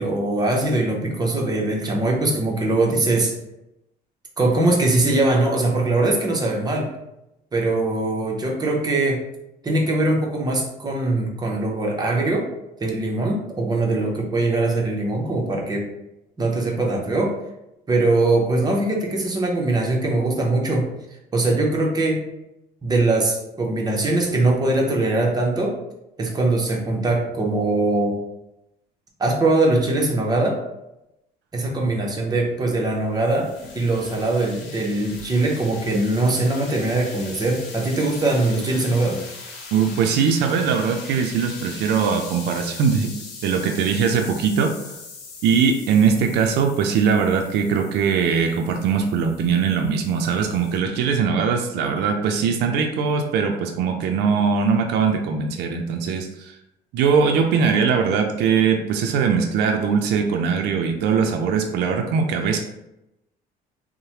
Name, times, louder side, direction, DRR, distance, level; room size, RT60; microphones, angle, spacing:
voice 1, 0.0-3.3 4.4-6.9 7.5-9.2 9.6-12.5 12.8-15.9 16.4-17.4 17.9-20.9 21.3-22.3 22.8-25.8 26.2-28.2 29.2-30.6 31.5-39.2, right 2 dB, 25° right, -1 dB, 0.7 m, -21 dB
sound 1, 32.6-50.8, left 4 dB, 85° left, 0.7 m, -40 dB
voice 2, 39.7-43.1 43.4-45.0 45.4-56.6 56.9-62.6, right 6 dB, 80° right, 3 dB, 0.4 m, -21 dB
3.1 x 2.1 x 2.8 m, 0.87 s
cardioid pair, 110°, 17 cm